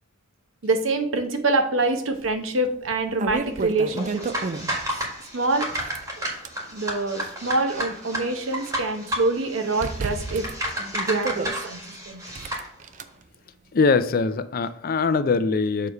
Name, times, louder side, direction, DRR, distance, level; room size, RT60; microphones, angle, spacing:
voice 1, 0.6-4.2 5.3-5.7 6.7-10.5 10.8-11.8 12.1-12.2, right 2 dB, 85° right, 1.0 m, -25 dB
sound 1, 2.2-2.3 2.8-4.9 5.6-6.6 7.3-8.7 9.0-9.1 9.8-11.7 12.3-13.0, right 4 dB, 40° right, 0.4 m, -32 dB
sound 2, 3.9-12.7, equal, 15° right, 1.6 m, -32 dB
voice 2, 13.7-15.9, left 4 dB, 45° left, 0.4 m, -22 dB
6.8 x 3.2 x 5.4 m
head